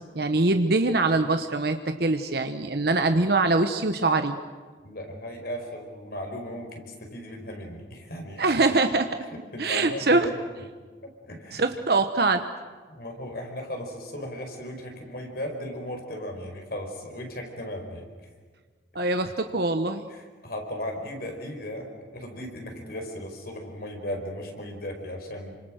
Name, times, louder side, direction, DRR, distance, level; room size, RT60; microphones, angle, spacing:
voice 1, 0.0-4.4 8.4-9.2 9.6-10.3 11.5-12.5 18.9-20.1, right 3 dB, 55° right, 7 dB, 1.1 m, -23 dB
voice 2, 4.8-8.7 9.3-10.4 10.7-11.6 12.9-18.3 20.1-25.6, left 1 dB, 55° left, 3 dB, 5.1 m, -37 dB
28.5 x 25.5 x 6.4 m, 1.5 s
head